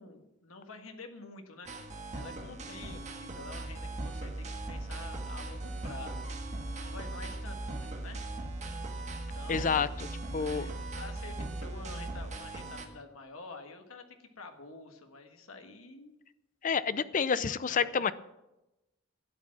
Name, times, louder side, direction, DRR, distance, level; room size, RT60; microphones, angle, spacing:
voice 1, 0.0-1.9 2.1-6.5 6.8-8.2 9.1-9.8 10.3-16.1 16.8-17.0 17.3-18.1, left 3 dB, 80° left, 5 dB, 1.6 m, -48 dB
sound 1, 1.7-12.9, right 2 dB, 35° right, 1.6 m, -42 dB
sound 2, 3.5-12.4, right 2 dB, 15° right, 1.0 m, -40 dB
voice 2, 9.5-10.1 10.3-10.7 16.6-18.1, left 6 dB, 40° left, 15 dB, 0.5 m, -29 dB
12.0 x 8.8 x 7.3 m, 0.95 s
head